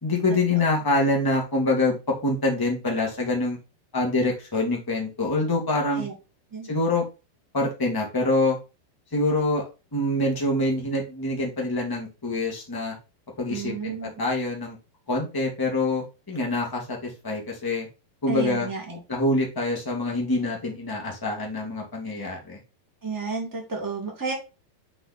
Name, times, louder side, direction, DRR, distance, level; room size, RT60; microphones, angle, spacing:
voice 1, 0.0-3.6 3.9-6.0 6.7-7.0 7.5-8.6 9.1-9.6 9.9-12.9 13.4-14.8 15.1-17.9 18.2-18.7 19.1-22.6, left 2 dB, 15° left, -1 dB, 0.7 m, -25 dB
voice 2, 13.5-14.1 18.3-19.0 23.0-24.3, right 4 dB, 5° right, -1 dB, 1.5 m, -31 dB
7.7 x 4.1 x 4.2 m, 0.29 s
omnidirectional pair, 4.3 m